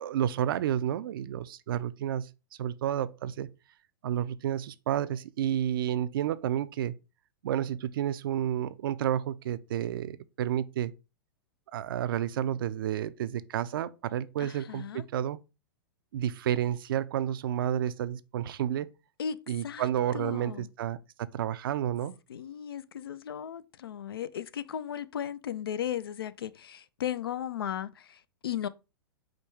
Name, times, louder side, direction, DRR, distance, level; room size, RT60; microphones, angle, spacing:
voice 1, 0.0-2.3 2.6-3.5 4.0-6.9 7.4-10.9 11.7-15.4 16.1-18.9 19.5-22.1, right 10 dB, 70° right, 0.4 m, -30 dB
voice 2, 14.4-15.1 19.2-19.4 19.6-19.9 20.1-20.7 22.3-28.2 28.4-28.7, left 9 dB, 85° left, 0.4 m, -36 dB
5.0 x 2.3 x 4.4 m
hypercardioid pair, 120°, 12 cm